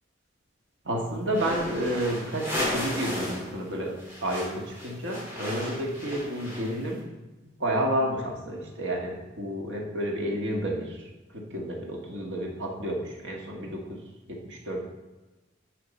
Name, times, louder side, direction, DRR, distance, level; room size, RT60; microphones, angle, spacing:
voice 1, 0.8-3.9 4.2-7.0 7.4-14.0 14.3-14.8, right 1 dB, 85° right, -1 dB, 1.6 m, -31 dB
sound 1, 1.3-3.5 3.7-6.9, left 1 dB, 15° right, 2.8 m, -34 dB
11.0 x 4.7 x 4.2 m, 1.1 s
head